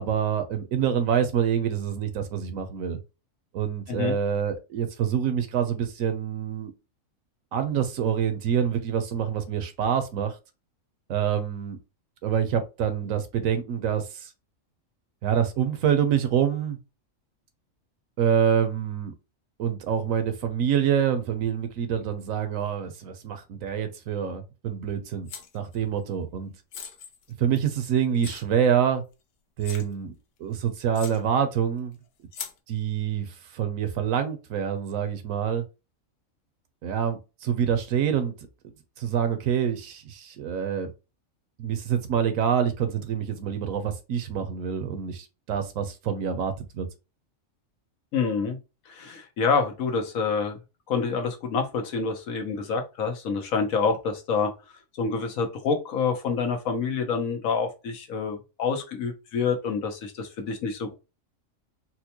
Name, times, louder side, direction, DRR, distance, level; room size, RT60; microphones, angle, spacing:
voice 1, 0.0-3.0 3.5-6.7 7.5-10.3 11.1-11.8 12.2-14.3 15.2-16.8 18.2-19.1 19.6-25.3 25.5-26.5 27.4-29.0 29.6-30.1 30.4-32.0 32.7-35.6 36.8-38.3 39.0-40.9 41.6-46.9, right 8 dB, 75° right, 1.1 m, -26 dB
sound 1, 25.3-25.8 26.7-27.7 28.2-28.4 29.1-29.2 29.6-29.9 30.5-30.6 30.9-31.2 32.3-32.6, left 7 dB, 60° left, 0.7 m, -40 dB
voice 2, 48.1-48.6 48.9-50.6 50.9-54.5 54.9-60.9, left 5 dB, 80° left, 1.3 m, -27 dB
4.3 x 2.2 x 2.8 m
omnidirectional pair, 1.4 m